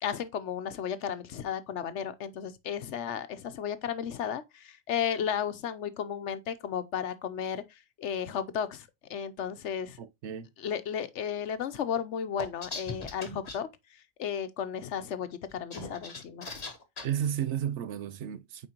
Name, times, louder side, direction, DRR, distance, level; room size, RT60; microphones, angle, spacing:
voice 1, 0.0-10.0 10.6-13.7 14.2-16.5, left 8 dB, 80° left, 1.1 m, -34 dB
voice 2, 10.0-10.5 17.0-18.7, right 9 dB, 75° right, 1.0 m, -33 dB
sound 1, 12.4-13.6 15.5-17.1, left 3 dB, 35° left, 1.2 m, -39 dB
8.6 x 4.5 x 2.9 m
omnidirectional pair, 1.2 m